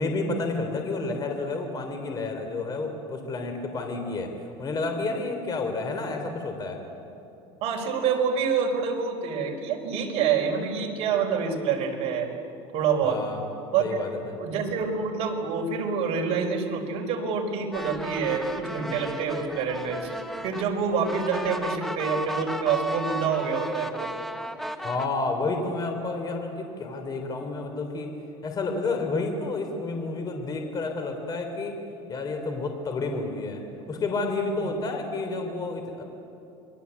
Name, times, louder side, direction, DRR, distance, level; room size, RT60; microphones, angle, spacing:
voice 1, 0.0-4.3 4.6-6.8 13.0-13.4 13.8-14.4 24.8-28.1 28.4-31.8 32.1-33.6 33.9-36.0, left 3 dB, 30° left, 5 dB, 3.5 m, -30 dB
voice 2, 7.6-12.3 12.7-13.2 13.7-14.0 14.4-20.1 20.4-24.1 34.6-34.7, right 6 dB, 50° right, 2 dB, 4.8 m, -27 dB
sound 1, 17.7-25.1, equal, ahead, 1.5 m, -34 dB
28.0 x 21.5 x 8.4 m, 3.0 s
supercardioid pair, 135°, 14 cm